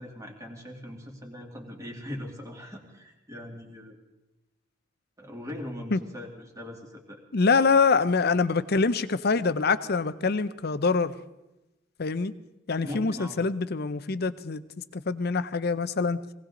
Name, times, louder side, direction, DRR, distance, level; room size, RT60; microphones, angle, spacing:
voice 1, 0.0-4.0 5.2-7.2 12.8-13.4, left 1 dB, 15° right, 0 dB, 2.4 m, -40 dB
voice 2, 7.3-11.1 12.0-12.3 12.7-14.6 14.9-16.2, left 4 dB, 50° left, 14 dB, 0.6 m, -25 dB
19.0 x 17.5 x 3.9 m, 0.97 s
head